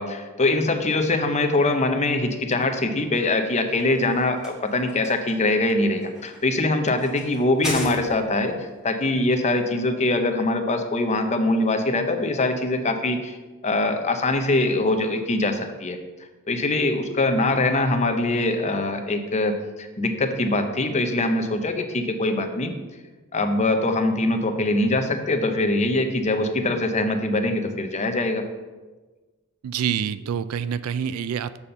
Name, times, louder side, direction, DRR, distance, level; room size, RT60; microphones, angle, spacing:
voice 1, 0.0-13.4 13.6-16.0 16.5-22.7 23.3-28.4, left 2 dB, 30° left, 6 dB, 0.7 m, -23 dB
sound 1, 3.4-8.5, equal, 5° right, 1.6 m, -37 dB
voice 2, 29.6-31.6, right 8 dB, 75° right, 15 dB, 0.4 m, -27 dB
7.0 x 4.2 x 6.6 m, 1.3 s
head